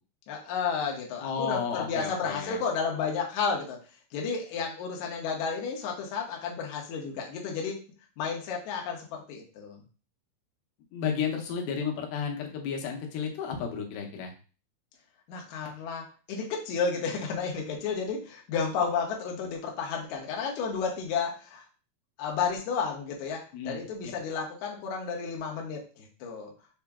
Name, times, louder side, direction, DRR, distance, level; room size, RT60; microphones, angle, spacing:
voice 1, 0.3-3.8 4.1-7.8 8.2-9.8 15.3-21.6 22.2-26.5, left 5 dB, 70° left, 0 dB, 1.8 m, -32 dB
voice 2, 1.2-2.6 10.9-14.3 23.5-24.1, left 6 dB, 90° left, 2 dB, 2.8 m, -32 dB
6.0 x 2.0 x 3.4 m, 0.36 s
omnidirectional pair, 4.4 m